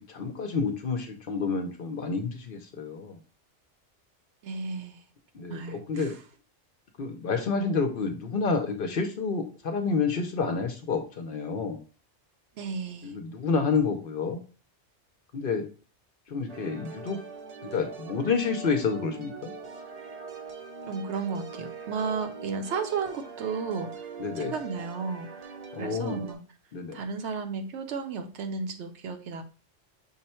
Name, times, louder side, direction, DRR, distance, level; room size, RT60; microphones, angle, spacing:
voice 1, 0.0-3.2 5.3-6.2 7.0-11.8 13.0-14.4 15.3-15.7 16.3-17.2 17.6-19.5 24.2-24.6 25.7-26.2 26.7-27.0, left 4 dB, 55° left, 5 dB, 0.7 m, -29 dB
voice 2, 4.4-5.0 5.5-6.2 12.6-13.2 20.9-24.1 24.4-25.3 25.8-26.4 26.9-29.4, right 5 dB, 70° right, 6 dB, 0.9 m, -33 dB
sound 1, 16.5-26.3, right 5 dB, 40° right, 0.6 m, -42 dB
5.5 x 2.2 x 4.2 m, 0.37 s
omnidirectional pair, 1.2 m